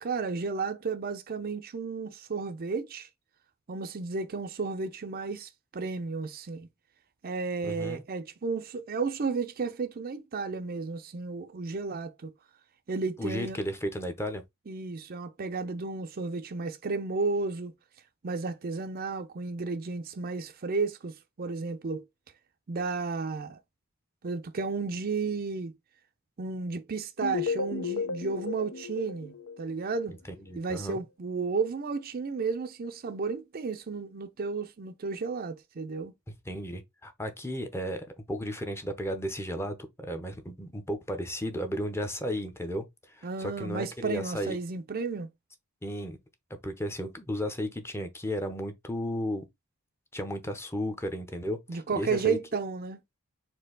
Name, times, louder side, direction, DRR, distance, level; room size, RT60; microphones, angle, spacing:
voice 1, 0.0-3.1 3.7-6.7 7.2-12.3 12.9-13.6 14.7-17.7 18.2-22.0 22.7-23.6 24.2-25.7 26.4-30.1 30.5-36.1 43.2-45.3 51.7-53.0, right 4 dB, 45° right, 0.5 m, -33 dB
voice 2, 7.6-8.0 13.2-14.4 30.5-31.0 36.5-42.8 43.1-44.6 45.8-46.2 46.6-49.5 50.1-52.4, equal, 10° left, 0.7 m, -34 dB
sound 1, 27.2-30.2, left 5 dB, 70° left, 0.6 m, -34 dB
4.4 x 2.7 x 3.8 m
head